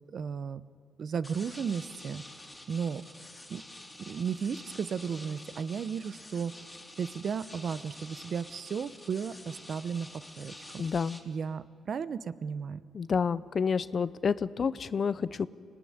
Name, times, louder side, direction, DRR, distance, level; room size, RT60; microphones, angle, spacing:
voice 1, 0.1-0.6 1.0-2.2 2.7-3.0 3.5-3.6 4.1-6.5 7.0-10.1 10.4-10.8 11.3-12.8, right 6 dB, 50° right, 15 dB, 0.8 m, -34 dB
sound 1, 1.2-11.2, left 1 dB, 15° left, 3.3 m, -48 dB
voice 2, 10.8-11.2 12.9-15.5, left 6 dB, 45° left, 17 dB, 0.6 m, -29 dB
25.0 x 19.0 x 9.6 m, 2.3 s
cardioid pair, 90°, 0 cm